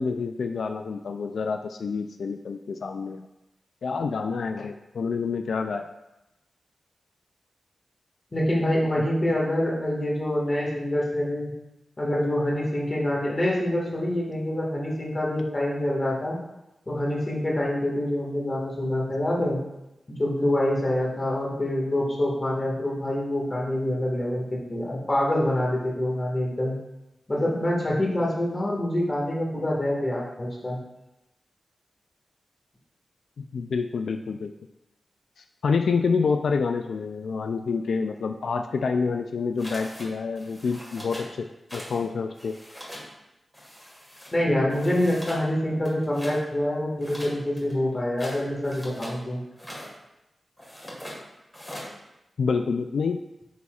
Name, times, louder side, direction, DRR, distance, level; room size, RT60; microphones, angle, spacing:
voice 1, 0.0-3.3 3.8-5.9 33.4-34.5 35.4-42.6 52.4-53.2, left 5 dB, 80° left, 6 dB, 0.3 m, -28 dB
voice 2, 8.3-11.5 12.0-16.4 16.9-19.6 20.2-24.4 24.7-26.7 27.3-30.8 44.3-49.4, left 1 dB, 20° left, -3 dB, 1.8 m, -26 dB
sound 1, 39.6-40.1 40.3-41.3 41.7-42.0 42.3-43.1 43.5-44.3 44.7-45.4 45.8-46.4 47.0-49.2 49.5-49.9 50.6-51.2 51.5-51.9, equal, 5° left, 1.7 m, -41 dB
8.2 x 7.2 x 2.4 m, 0.94 s
wide cardioid pair, 170°, 0 cm